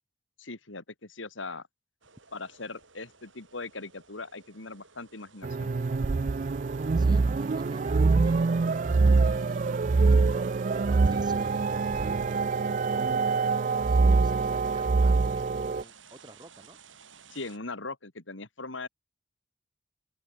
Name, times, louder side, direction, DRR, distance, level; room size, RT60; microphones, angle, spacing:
voice 1, 0.4-1.6 2.3-5.7 17.3-18.9, left 3 dB, 90° left, 2.7 m, -40 dB
sound 1, 2.0-17.6, right 7 dB, 90° right, 7.8 m, -54 dB
sound 2, 5.4-15.8, right 4 dB, 45° right, 0.4 m, -24 dB
voice 2, 7.0-10.5 10.7-13.5 13.8-16.8, right 1 dB, 20° right, 2.6 m, -49 dB
open air
head